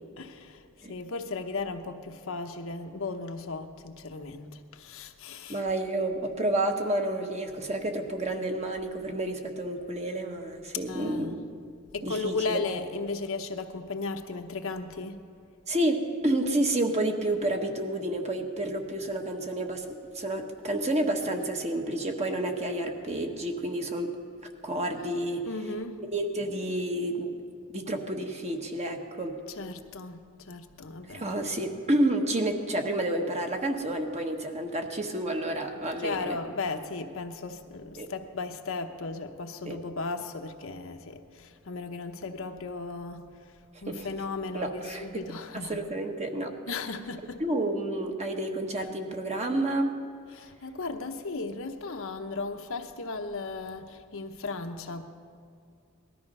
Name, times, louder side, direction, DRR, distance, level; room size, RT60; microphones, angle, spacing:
voice 1, 0.2-0.6 0.9-5.6 10.9-11.4 11.9-15.3 25.5-26.0 29.6-31.3 36.0-43.3 43.8-45.8 46.7-47.4 48.8-48.9 50.3-55.0, left 3 dB, 70° left, 5 dB, 0.9 m, -36 dB
voice 2, 5.5-11.4 12.0-12.6 15.7-24.1 24.6-25.4 26.1-27.4 27.7-29.4 31.1-36.4 38.0-38.1 39.6-39.8 43.9-44.1 44.5-45.2 45.5-46.5 47.4-49.9, right 1 dB, 30° right, 3 dB, 1.3 m, -30 dB
19.0 x 13.0 x 5.5 m, 2.2 s
head